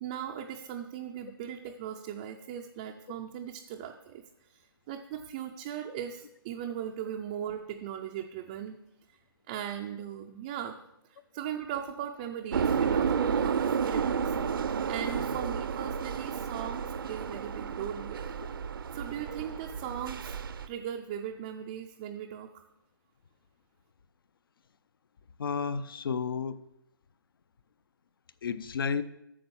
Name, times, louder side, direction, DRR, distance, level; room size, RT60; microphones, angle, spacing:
voice 1, 0.0-8.8 9.5-10.8 11.1-18.3 18.9-20.4 20.7-22.6, right 9 dB, 15° right, 2 dB, 0.4 m, -38 dB
sound 1, 12.5-20.7, right 6 dB, 65° right, 0.6 m, -31 dB
voice 2, 25.4-26.6 28.4-29.0, left 6 dB, 70° left, 15 dB, 0.6 m, -31 dB
8.7 x 6.1 x 6.9 m, 0.85 s
hypercardioid pair, 165°, 12 cm